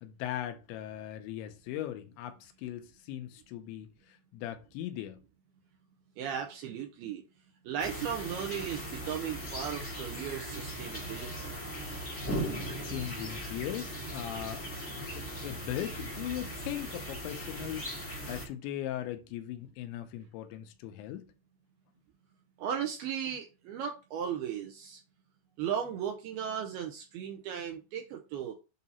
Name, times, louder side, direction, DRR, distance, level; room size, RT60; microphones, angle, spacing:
voice 1, 0.0-5.2 12.8-14.6 14.9-21.3, left 12 dB, 90° left, 3.1 m, -39 dB
voice 2, 6.2-7.2 7.7-11.5 22.6-25.0 25.6-28.5, right 8 dB, 80° right, 2.3 m, -36 dB
sound 1, 7.8-18.5, right 1 dB, 75° left, 0.6 m, -39 dB
8.2 x 2.8 x 5.4 m
omnidirectional pair, 5.2 m